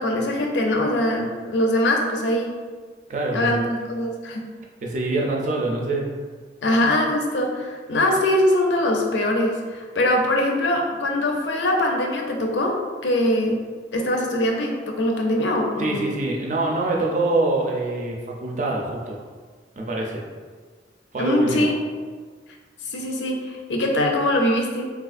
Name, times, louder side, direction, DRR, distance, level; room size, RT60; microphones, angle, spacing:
voice 1, 0.0-2.6 3.3-4.4 6.6-13.6 13.9-16.0 21.2-21.7 22.8-24.8, left 1 dB, 90° left, 1 dB, 0.5 m, -22 dB
voice 2, 3.1-3.6 4.8-6.1 15.8-19.2 19.8-20.2 21.1-21.7, right 2 dB, 45° right, -1 dB, 0.5 m, -25 dB
3.5 x 2.4 x 2.4 m, 1.5 s
head